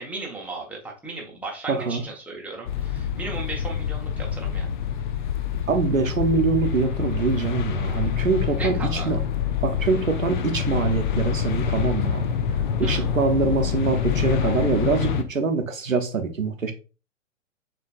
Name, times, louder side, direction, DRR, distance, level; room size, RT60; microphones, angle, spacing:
voice 1, 0.0-4.7 8.6-9.1 12.8-13.1, right 3 dB, 5° right, 0.9 m, -36 dB
voice 2, 1.7-2.0 5.7-9.2 9.6-12.3 12.8-16.7, right 4 dB, 85° right, 0.9 m, -24 dB
sound 1, 2.7-15.2, left 8 dB, 40° left, 0.5 m, -26 dB
6.6 x 3.3 x 2.3 m
figure-of-eight pair, 110°, 38 cm